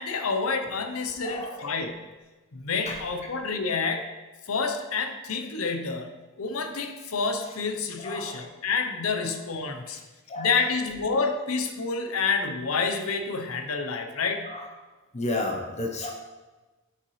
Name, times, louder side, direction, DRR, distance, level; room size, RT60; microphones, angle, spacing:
voice 1, 0.0-2.0 2.5-4.1 4.5-6.1 6.4-10.0 10.4-14.5, left 4 dB, 70° left, 6 dB, 0.7 m, -28 dB
voice 2, 1.2-1.7 2.9-3.0 8.0-8.4 9.9-10.0 10.3-10.5 14.5-14.7 15.1-16.1, left 2 dB, 30° left, 0 dB, 0.9 m, -32 dB
7.4 x 5.9 x 3.2 m, 1.2 s
head